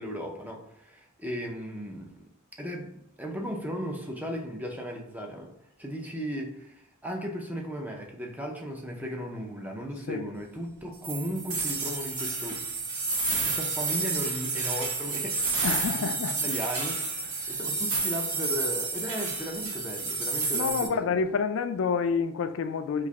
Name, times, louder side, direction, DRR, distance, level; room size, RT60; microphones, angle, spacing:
voice 1, 0.0-2.2 2.6-5.5 5.8-12.6 13.3-16.1 16.4-17.0 17.5-21.2, equal, 5° right, 1 dB, 0.5 m, -36 dB
sound 1, 11.0-20.9, right 4 dB, 80° right, 0.9 m, -30 dB
voice 2, 15.6-16.6 17.7-17.8 20.5-23.1, left 5 dB, 60° left, 9 dB, 0.3 m, -28 dB
3.1 x 2.5 x 3.5 m, 0.80 s
head